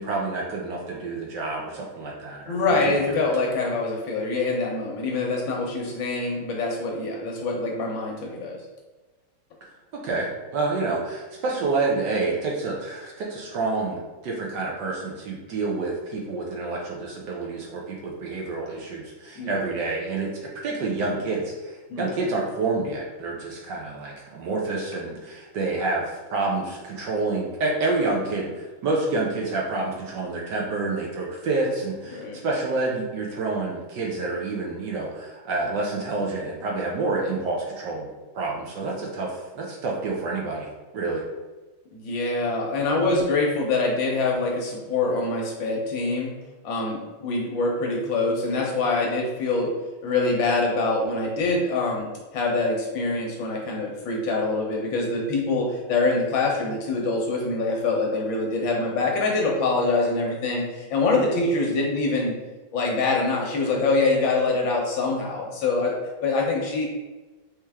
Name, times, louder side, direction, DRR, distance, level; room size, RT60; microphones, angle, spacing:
voice 1, 0.0-2.6 3.1-3.2 9.9-38.1 38.3-40.7 40.9-41.2, right 3 dB, 65° right, -2 dB, 1.3 m, -28 dB
voice 2, 2.5-8.6 19.4-19.6 21.9-22.1 32.1-32.4 41.9-46.3 46.6-49.7 50.0-62.3 62.7-66.0 66.2-66.9, left 3 dB, 70° left, -1 dB, 1.6 m, -25 dB
4.3 x 3.3 x 3.5 m, 1.2 s
omnidirectional pair, 2.3 m